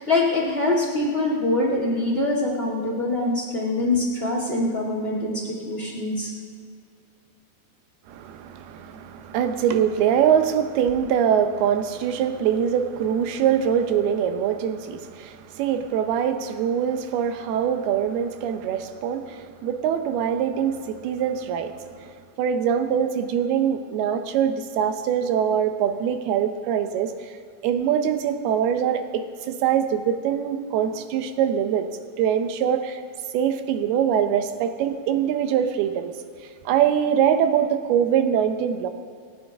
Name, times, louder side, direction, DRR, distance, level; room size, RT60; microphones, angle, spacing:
voice 1, 0.0-6.3, left 2 dB, 20° left, -3 dB, 1.7 m, -24 dB
voice 2, 8.1-27.3 27.6-31.9 32.2-33.0 33.3-36.1 36.7-38.9, right 8 dB, 85° right, 8 dB, 2.8 m, -23 dB
27.5 x 9.7 x 3.6 m, 2.1 s
omnidirectional pair, 4.4 m